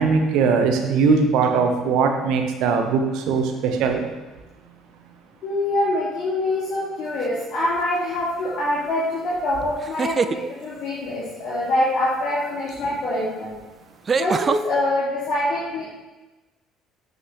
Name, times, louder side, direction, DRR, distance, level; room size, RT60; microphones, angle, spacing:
voice 1, 0.0-4.0, right 5 dB, 60° right, 4 dB, 1.0 m, -20 dB
voice 2, 5.4-13.6 14.1-15.8, left 1 dB, 50° left, -8 dB, 2.5 m, -24 dB
sound 1, 7.2-7.6 9.8-10.4 12.7-12.8 14.1-14.6, right 5 dB, 35° right, 0.3 m, -24 dB
13.0 x 5.5 x 3.3 m, 1.1 s
figure-of-eight pair, 55°, 0 cm